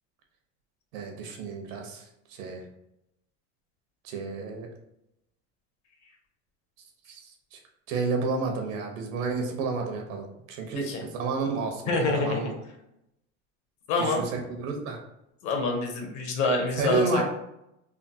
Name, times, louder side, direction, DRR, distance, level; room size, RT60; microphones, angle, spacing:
voice 1, 0.9-2.6 4.0-4.7 7.1-7.2 7.5-7.6 7.9-12.5 14.0-15.0 16.8-17.2, right 3 dB, 85° right, 2 dB, 0.9 m, -31 dB
voice 2, 11.9-12.4 13.9-14.2 15.4-17.2, left 3 dB, 50° left, 2 dB, 0.9 m, -26 dB
3.5 x 2.0 x 2.7 m, 0.84 s
supercardioid pair, 130°, 38 cm